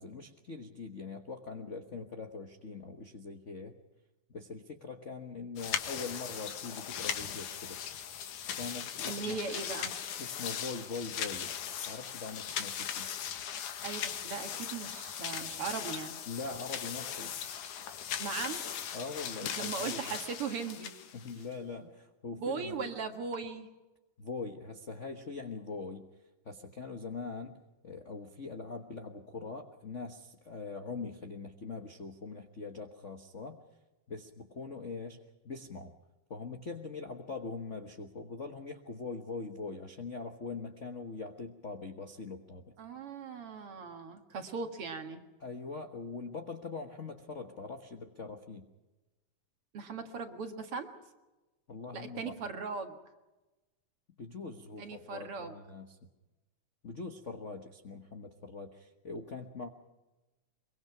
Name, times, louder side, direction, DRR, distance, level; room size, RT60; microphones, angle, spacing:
voice 1, 0.0-3.8 4.3-7.8 8.5-9.4 10.2-11.5 11.9-13.1 16.3-17.3 18.9-20.0 21.1-22.9 24.2-26.0 26.4-27.6 27.8-33.6 34.1-35.2 35.4-35.9 36.3-42.7 45.4-48.7 51.7-52.5 54.2-56.0 56.8-59.7, left 4 dB, 60° left, 5 dB, 0.7 m, -42 dB
sound 1, 5.6-21.5, left 9 dB, 80° left, 3.0 m, -39 dB
voice 2, 9.1-10.0 13.8-16.2 18.2-18.6 19.6-20.9 22.3-23.7 42.8-45.2 49.7-50.9 51.9-53.0 54.8-55.6, right 5 dB, 50° right, 6 dB, 2.4 m, -38 dB
24.0 x 23.0 x 5.9 m, 1.1 s
omnidirectional pair, 3.5 m